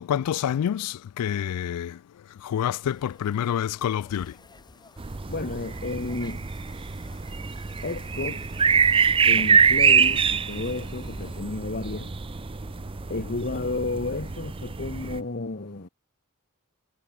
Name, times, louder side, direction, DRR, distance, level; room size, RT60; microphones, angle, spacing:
voice 1, 0.0-2.0 2.4-4.3, left 9 dB, 90° left, 0.3 m, -27 dB
sound 1, 2.8-11.4, left 3 dB, 20° left, 5.4 m, -53 dB
sound 2, 5.0-15.2, right 6 dB, 25° right, 0.5 m, -25 dB
voice 2, 5.3-6.5 7.8-8.5 9.3-12.1 13.1-15.9, left 2 dB, 45° left, 1.4 m, -32 dB
head